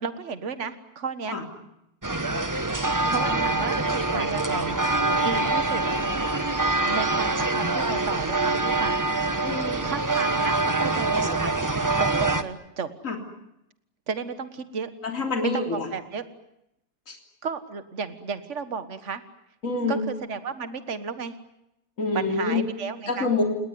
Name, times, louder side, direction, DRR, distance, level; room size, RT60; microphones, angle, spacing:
voice 1, 0.0-1.4 2.6-4.8 5.2-5.8 6.9-8.9 9.8-11.5 12.0-12.9 14.1-14.9 15.4-16.2 17.4-19.2 19.9-21.3 22.1-23.3, right 5 dB, 45° right, 11 dB, 1.9 m, -33 dB
sound 1, 2.0-12.4, right 2 dB, 15° right, 1.0 m, -25 dB
voice 2, 9.4-9.9 13.0-13.2 15.0-15.9 17.1-17.2 19.6-20.0 22.0-22.6 23.1-23.4, left 3 dB, 50° left, 3 dB, 3.8 m, -26 dB
29.5 x 19.0 x 9.6 m, 0.84 s
omnidirectional pair, 1.7 m